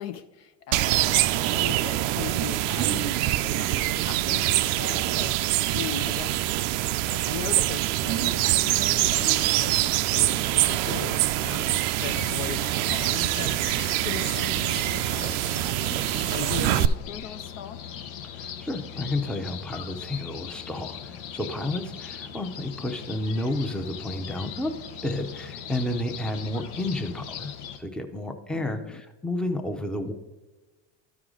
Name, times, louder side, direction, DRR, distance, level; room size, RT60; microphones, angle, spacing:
voice 1, 0.0-6.5 7.1-15.5 16.3-17.8 28.5-29.0, left 10 dB, 50° left, 10 dB, 0.5 m, -39 dB
sound 1, 0.7-16.9, right 15 dB, 70° right, 0.5 m, -25 dB
sound 2, 12.0-27.8, left 7 dB, 70° left, 0.9 m, -40 dB
voice 2, 18.4-24.8 25.0-27.5 27.8-30.1, left 1 dB, ahead, 5 dB, 0.7 m, -31 dB
12.5 x 4.8 x 3.8 m, 1.2 s
supercardioid pair, 125°, 35 cm